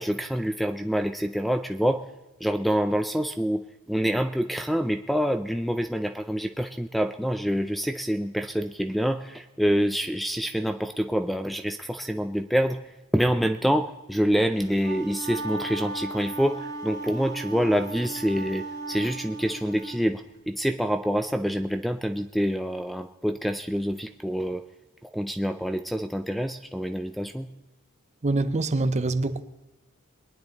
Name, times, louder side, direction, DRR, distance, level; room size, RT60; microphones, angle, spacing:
voice 1, 0.0-2.0 2.4-12.8 13.1-24.6 25.0-27.5, equal, ahead, 0.4 m, -26 dB
Wind instrument woodwind instrument, 14.6-20.0, right 2 dB, 15° left, 1.7 m, -36 dB
voice 2, 28.2-29.4, right 2 dB, 30° right, 0.7 m, -25 dB
22.5 x 10.0 x 4.0 m
head